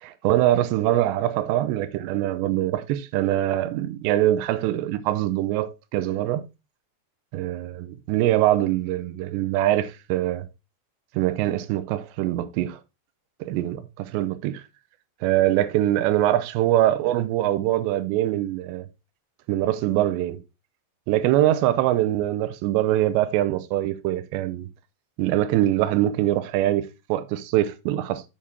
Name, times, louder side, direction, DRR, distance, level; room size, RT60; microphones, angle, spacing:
voice 1, 0.0-6.4 7.3-10.4 11.1-12.8 13.4-14.6 15.2-18.9 19.5-20.4 21.1-24.7 25.2-28.2, right 13 dB, 85° right, 2.9 m, -23 dB
7.2 x 6.6 x 3.6 m
omnidirectional pair, 5.0 m